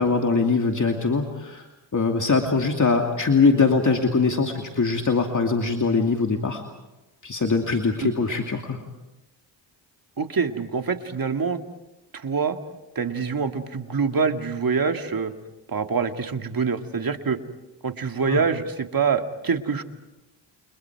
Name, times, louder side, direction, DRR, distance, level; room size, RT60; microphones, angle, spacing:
voice 1, 0.0-1.6 1.9-6.6 7.2-8.8 18.3-18.4, left 4 dB, 40° left, 2 dB, 2.6 m, -22 dB
voice 2, 10.2-11.6 12.1-12.6 13.0-15.3 15.7-17.4 17.8-19.8, right 5 dB, 45° right, 6 dB, 2.2 m, -25 dB
29.5 x 29.5 x 4.8 m, 1.0 s
cardioid pair, 65°, 47 cm